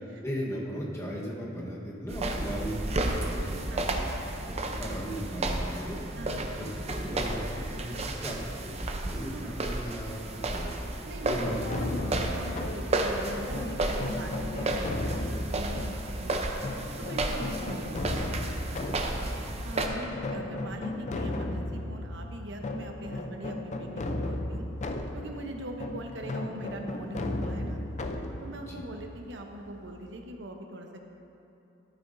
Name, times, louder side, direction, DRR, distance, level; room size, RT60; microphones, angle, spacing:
voice 1, 0.2-4.1 4.5-6.0 6.6-8.0 8.2-10.8 11.2-11.6 12.0-12.3 17.0-17.3 19.1-19.4 28.6-28.8, equal, 15° left, -4 dB, 1.2 m, -37 dB
sound 1, 2.1-19.9, right 2 dB, 35° right, 0.6 m, -32 dB
voice 2, 3.7-4.2 6.2-6.5 7.8-8.0 9.2-9.6 11.0-16.3 16.7-18.4 19.6-24.7 25.1-27.8 28.4-31.0, right 1 dB, 65° right, 3 dB, 0.8 m, -41 dB
sound 2, 11.4-30.1, left 1 dB, 35° left, 0.5 m, -35 dB
11.5 x 9.3 x 2.6 m, 2.8 s
head